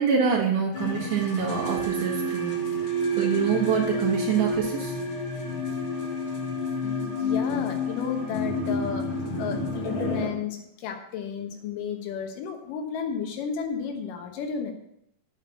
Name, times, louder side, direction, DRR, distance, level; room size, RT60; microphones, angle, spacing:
voice 1, 0.0-2.5 3.2-4.9, right 7 dB, 70° right, -3 dB, 3.0 m, -25 dB
sound 1, 0.7-10.3, left 1 dB, 40° left, 2.6 m, -29 dB
voice 2, 6.8-9.1 9.4-14.7, left 6 dB, 75° left, 4 dB, 2.7 m, -33 dB
8.8 x 6.0 x 7.1 m, 0.79 s
omnidirectional pair, 4.0 m